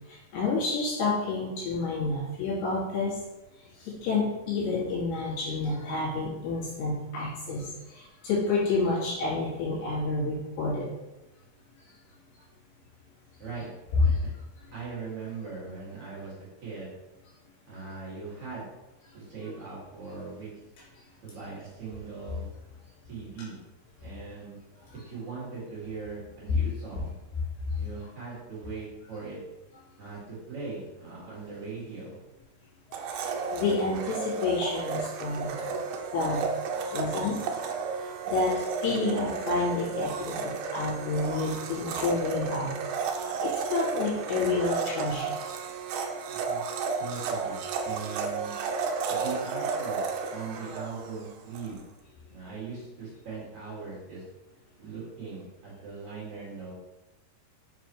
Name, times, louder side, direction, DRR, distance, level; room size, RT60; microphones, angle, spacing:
voice 1, 0.1-3.1 3.8-10.8 13.9-14.2 33.0-33.2 33.5-35.7 36.1-36.4 36.9-37.4 38.0-42.7 43.4-45.3, left 3 dB, 70° left, -6 dB, 4.3 m, -29 dB
voice 2, 14.7-16.3 16.6-16.9 17.7-18.6 19.1-20.5 21.2-22.5 23.1-23.6 24.0-24.6 25.0-27.1 27.8-29.4 30.0-32.2 46.3-46.6 47.0-47.6 47.8-48.5 49.1-50.0 50.3-51.8 52.3-54.2 54.8-56.7, right 4 dB, 45° right, -7 dB, 3.3 m, -40 dB
Domestic sounds home sounds, 32.9-51.7, right 5 dB, 80° right, 2.5 m, -33 dB
6.8 x 6.2 x 3.2 m, 0.98 s
omnidirectional pair, 5.0 m